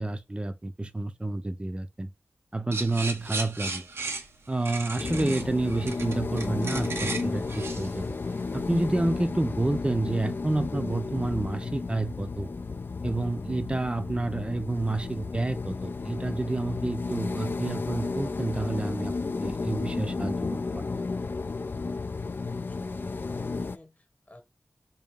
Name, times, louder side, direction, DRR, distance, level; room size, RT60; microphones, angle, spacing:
voice 1, 0.0-2.1 2.5-3.9 4.5-8.2 8.5-12.5 13.0-19.1 19.4-20.8, right 2 dB, 25° right, 0.5 m, -29 dB
sound 1, 2.7-8.8, right 3 dB, 75° right, 0.7 m, -36 dB
sound 2, 5.0-23.8, left 4 dB, 55° left, 0.3 m, -33 dB
voice 2, 22.1-24.4, left 1 dB, 35° left, 1.1 m, -49 dB
4.1 x 2.3 x 3.4 m
cardioid pair, 45°, 4 cm